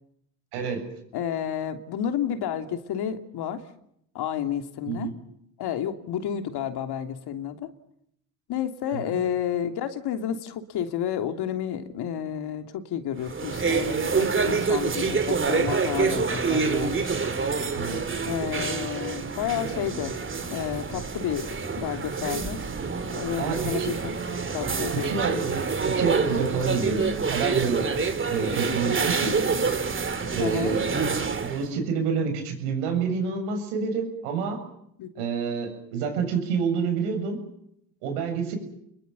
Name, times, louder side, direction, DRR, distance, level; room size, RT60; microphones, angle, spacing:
voice 1, 0.5-0.8 4.8-5.1 8.9-9.2 17.7-18.0 23.4-23.9 24.9-27.9 28.3-29.3 30.3-30.8 31.4-34.6 35.2-37.4 38.0-38.6, right 5 dB, 85° right, 6 dB, 7.4 m, -28 dB
voice 2, 1.1-3.6 4.1-5.1 5.6-7.7 8.5-17.1 18.3-20.2 20.5-21.5 21.7-22.6 23.1-24.1 24.5-25.4 28.8-28.9 30.4-30.8 35.0-35.3, left 9 dB, 65° left, 7 dB, 3.1 m, -31 dB
sound 1, 13.2-31.7, right 5 dB, 25° right, 3.1 m, -27 dB
29.0 x 22.5 x 7.1 m, 0.73 s
supercardioid pair, 80°, 43 cm